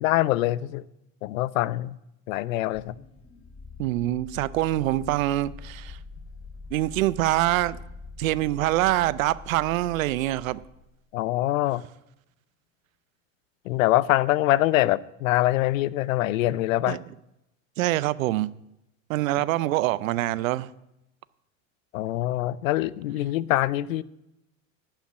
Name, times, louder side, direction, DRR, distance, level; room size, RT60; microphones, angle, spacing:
voice 1, 0.0-0.8 1.2-2.0 2.3-2.9 11.1-11.8 13.6-17.0 21.9-24.0, left 16 dB, 85° left, 0.6 m, -24 dB
sound 1, 2.7-10.9, left 4 dB, 30° left, 1.6 m, -44 dB
voice 2, 3.8-6.0 6.7-7.8 8.2-10.6 16.9-17.0 17.8-18.5 19.1-20.7, right 15 dB, 90° right, 0.6 m, -25 dB
11.5 x 5.7 x 9.0 m
supercardioid pair, 120°, 39 cm